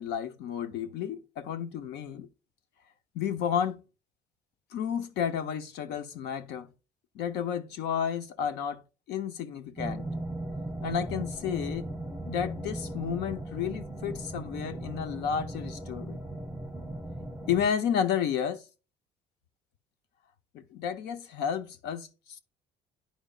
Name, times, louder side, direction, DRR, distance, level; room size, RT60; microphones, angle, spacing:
voice 1, 0.0-2.3 3.1-3.8 4.7-6.7 7.1-8.8 9.1-10.1 10.8-11.9 12.3-16.2 17.5-18.6 20.5-22.4, left 8 dB, 80° left, 0.8 m, -31 dB
sound 1, 9.8-17.7, right 1 dB, ahead, 1.0 m, -37 dB
10.5 x 5.1 x 2.4 m
cardioid pair, 110°, 17 cm